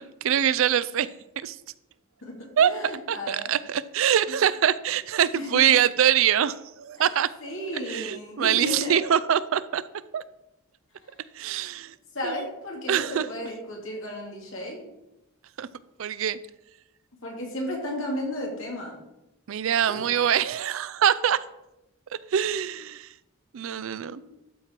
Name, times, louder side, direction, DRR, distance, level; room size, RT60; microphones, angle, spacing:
voice 1, 0.2-1.1 1.4-1.6 2.6-7.3 7.9-9.8 10.1-10.2 11.4-11.9 12.2-12.5 12.9-13.3 15.6-15.7 16.0-16.4 19.5-21.4 22.3-23.1 23.5-24.2, right 9 dB, 70° right, 16 dB, 0.4 m, -24 dB
voice 2, 2.2-3.5 5.3-5.6 7.0-7.1 7.4-9.0 11.0-11.1 12.1-14.8 17.2-19.0 19.9-20.1 24.0-24.2, left 1 dB, 70° left, -1 dB, 2.5 m, -34 dB
12.5 x 4.6 x 4.4 m, 0.91 s
head